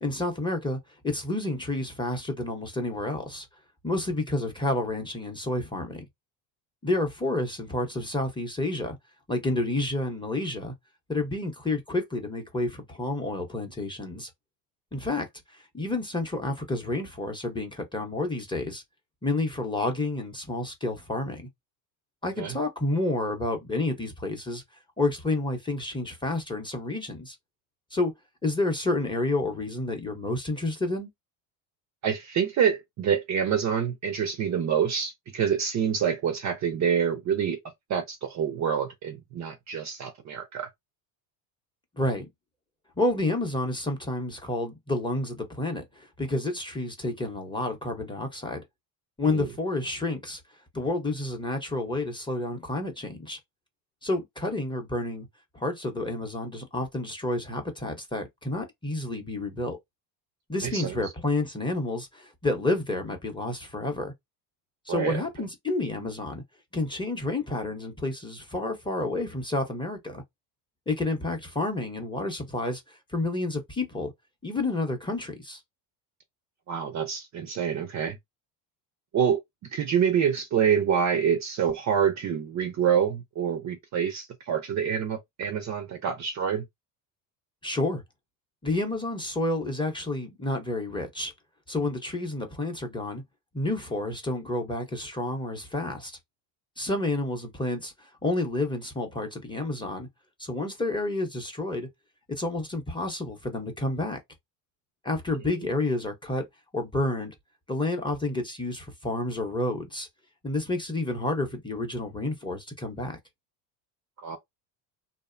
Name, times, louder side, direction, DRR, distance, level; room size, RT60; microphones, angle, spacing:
voice 1, 0.0-3.5 3.8-6.1 6.8-9.0 9.3-10.7 11.1-14.3 14.9-18.8 19.2-21.5 22.2-24.6 25.0-27.4 27.9-28.1 28.4-31.1 42.0-42.3 43.0-48.6 49.2-50.4 50.7-53.4 54.0-55.3 55.5-59.8 60.5-64.1 64.9-66.4 66.7-70.2 70.9-74.1 74.4-75.6 87.6-88.0 88.6-91.3 91.7-93.2 93.5-96.2 96.8-100.1 100.4-101.9 102.3-104.2 105.0-106.5 106.7-107.3 107.7-110.1 110.4-113.2, left 2 dB, 10° left, 0.7 m, -30 dB
voice 2, 32.0-37.6 37.9-40.7 49.3-49.5 60.6-61.0 64.9-65.2 76.7-78.2 79.1-79.4 79.7-86.6 114.2-114.4, right 8 dB, 35° right, 0.5 m, -26 dB
2.6 x 2.0 x 2.5 m
supercardioid pair, 95°, 50 cm